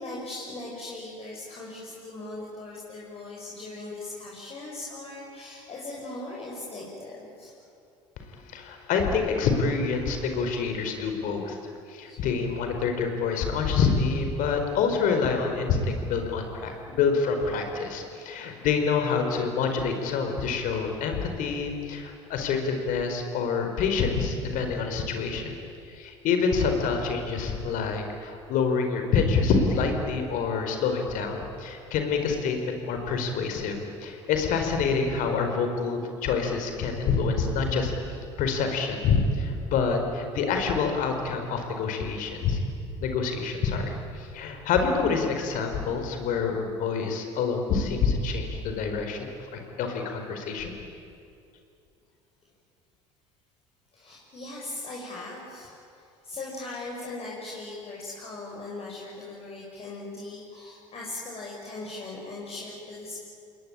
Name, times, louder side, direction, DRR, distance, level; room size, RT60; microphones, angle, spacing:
voice 1, 0.0-7.5 12.1-12.2 17.6-17.7 19.7-19.8 53.9-63.2, left 2 dB, 40° left, -4 dB, 6.3 m, -39 dB
voice 2, 8.2-11.6 11.9-25.6 25.9-37.9 38.4-42.6 43.0-50.7, left 5 dB, 60° left, 5 dB, 4.7 m, -27 dB
28.5 x 21.0 x 9.0 m, 2.5 s
hypercardioid pair, 70°, 16 cm